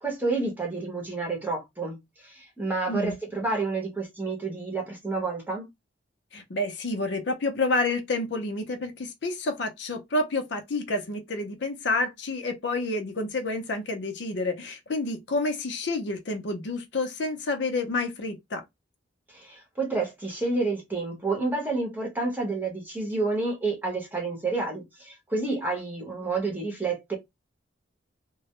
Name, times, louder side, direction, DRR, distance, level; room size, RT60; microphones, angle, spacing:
voice 1, 0.0-2.0 2.2-5.7 19.3-27.1, right 3 dB, 10° right, 0.8 m, -29 dB
voice 2, 6.3-18.6, left 2 dB, 60° left, 0.5 m, -29 dB
2.2 x 2.0 x 2.8 m
head